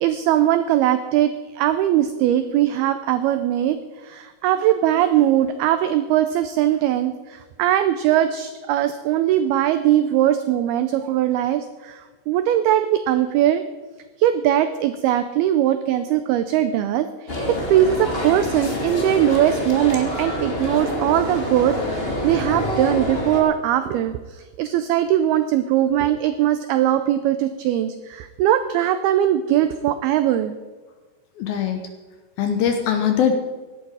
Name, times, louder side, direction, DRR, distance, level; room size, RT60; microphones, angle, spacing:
voice 1, 0.0-3.8 4.0-13.6 14.2-30.6, right 12 dB, 90° right, 10 dB, 2.2 m, -20 dB
sound 1, 17.3-23.4, left 1 dB, 25° left, 1.2 m, -26 dB
voice 2, 31.4-31.9 32.4-33.3, left 8 dB, 75° left, 5 dB, 2.3 m, -21 dB
17.5 x 11.5 x 4.8 m, 1.3 s
omnidirectional pair, 5.2 m